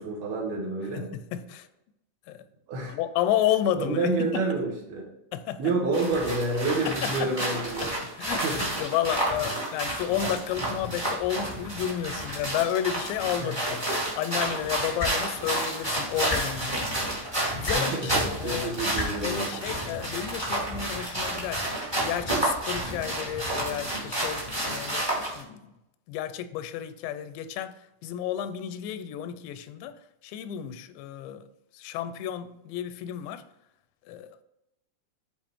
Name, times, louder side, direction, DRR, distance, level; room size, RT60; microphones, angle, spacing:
voice 1, 0.0-1.1 2.7-3.0 3.8-5.1 5.6-7.9 8.4-8.7 13.4-13.6 17.7-19.5, right 3 dB, 65° right, 2.9 m, -29 dB
voice 2, 0.9-1.7 2.3-2.5 2.9-4.4 5.3-5.7 6.9-7.3 7.8-13.8 14.1-16.9 17.2-18.8 19.2-21.6 22.0-25.6 26.1-27.8 28.0-31.4 31.7-33.4 34.1-34.4, left 10 dB, 85° left, 2.8 m, -31 dB
sound 1, 5.9-25.4, right 1 dB, 20° right, 0.6 m, -30 dB
sound 2, 15.0-15.1 16.3-16.4 17.6-17.8 18.9-19.1 20.3-20.4, left 2 dB, 30° left, 0.6 m, -29 dB
9.7 x 4.2 x 3.5 m
omnidirectional pair, 5.0 m